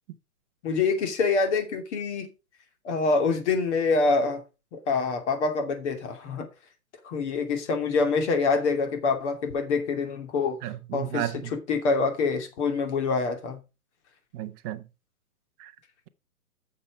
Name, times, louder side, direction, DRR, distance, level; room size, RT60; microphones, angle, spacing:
voice 1, 0.6-2.3 2.8-4.4 4.7-6.5 7.0-10.6 10.9-13.6, left 4 dB, 50° left, 2.8 m, -26 dB
voice 2, 10.6-11.5 14.3-14.8 15.6-15.7, right 13 dB, 15° right, 0.5 m, -33 dB
8.8 x 6.7 x 4.8 m
hypercardioid pair, 130°, 44 cm